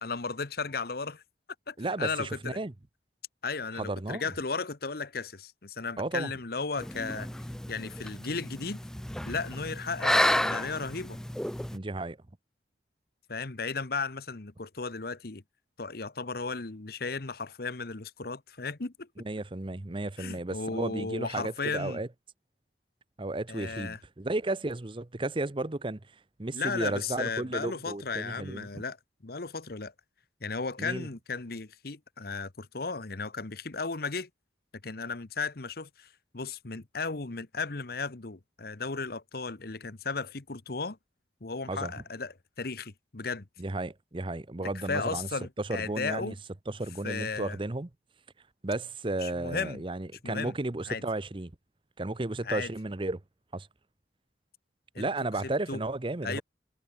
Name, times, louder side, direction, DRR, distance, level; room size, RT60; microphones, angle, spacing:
voice 1, 0.0-1.2 1.7-2.6 3.4-7.3 7.7-8.8 9.2-11.2 13.3-15.4 15.8-19.1 20.2-22.0 23.5-24.0 26.5-29.0 29.2-29.9 30.4-34.3 34.8-36.1 36.3-41.0 41.4-43.5 44.6-46.3 47.0-47.6 49.2-49.8 50.2-50.5 50.9-51.0 52.4-52.7 54.9-55.1 55.4-55.8 56.2-56.4, left 4 dB, 55° left, 1.1 m, -35 dB
voice 2, 1.8-2.7 3.7-4.3 6.0-6.3 11.7-12.2 19.2-22.1 23.2-26.0 26.4-28.7 30.8-31.1 41.7-41.9 43.6-45.3 45.6-46.3 46.7-47.9 48.6-51.5 52.0-53.2 53.5-53.7 55.0-56.4, right 2 dB, 30° right, 0.8 m, -33 dB
sound 1, 6.8-11.8, left 1 dB, 5° left, 0.3 m, -31 dB
head